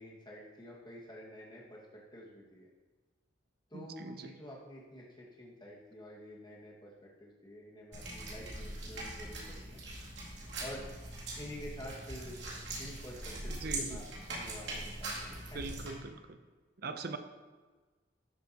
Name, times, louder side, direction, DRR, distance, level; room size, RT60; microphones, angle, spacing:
voice 1, 0.0-2.7 3.7-9.8 10.6-10.8 11.4-12.4 12.8-15.6, equal, 25° left, -4 dB, 1.9 m, -49 dB
voice 2, 3.7-4.3 13.5-14.0 15.5-16.4 16.8-17.2, right 3 dB, 55° right, 8 dB, 0.7 m, -41 dB
sound 1, 7.9-15.9, right 2 dB, 70° right, 2.8 m, -42 dB
12.5 x 7.2 x 3.0 m, 1.3 s
head